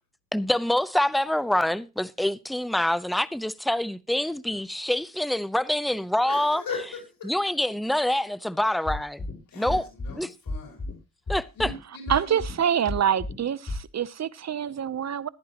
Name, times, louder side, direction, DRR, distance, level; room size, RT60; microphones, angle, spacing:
voice 1, 0.3-6.6 7.2-9.3 9.5-9.9 10.2-10.3 11.3-11.7, left 1 dB, ahead, 0.7 m, -26 dB
voice 2, 6.2-7.3 9.5-10.9 11.6-12.4, left 4 dB, 85° left, 5.0 m, -38 dB
sound 1, 8.9-9.3 9.7-10.1 10.5-10.9 11.3-11.7 12.1-12.5 12.9-13.3 13.7-13.8, left 2 dB, 45° left, 4.4 m, -31 dB
voice 3, 12.1-15.3, right 9 dB, 55° right, 0.8 m, -26 dB
14.5 x 11.0 x 2.9 m
cardioid pair, 60°, 33 cm